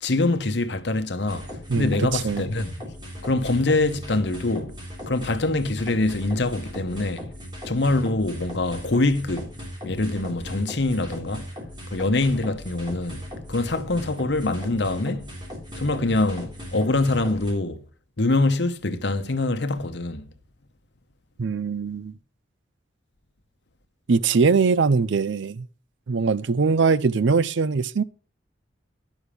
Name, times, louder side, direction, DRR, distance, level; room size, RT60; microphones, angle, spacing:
voice 1, 0.0-1.5 1.8-2.7 3.2-4.7 5.1-7.3 7.6-9.5 9.8-11.4 11.9-15.3 15.7-17.8 18.2-20.3, left 2 dB, 65° left, 1.0 m, -24 dB
sound 1, 1.3-17.5, equal, 25° right, 3.7 m, -38 dB
voice 2, 1.7-2.4 21.4-22.1 24.1-25.7 26.1-28.0, right 4 dB, 75° right, 0.5 m, -22 dB
11.5 x 6.3 x 5.2 m
head